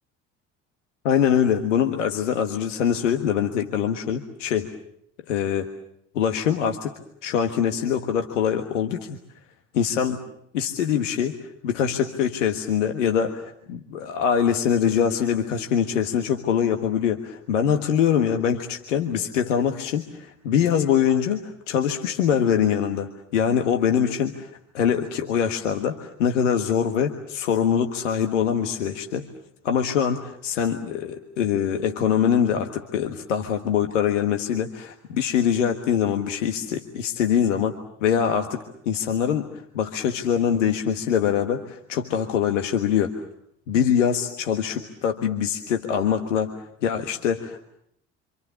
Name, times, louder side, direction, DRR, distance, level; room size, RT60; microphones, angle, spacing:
voice 1, 1.0-4.7 5.3-5.7 6.1-6.9 7.2-9.2 9.7-10.2 10.5-11.4 11.6-29.3 29.6-43.2 43.7-46.5 46.8-47.7, left 8 dB, 75° left, 5 dB, 1.6 m, -23 dB
27.5 x 27.0 x 7.0 m, 0.74 s
figure-of-eight pair, 55°, 37 cm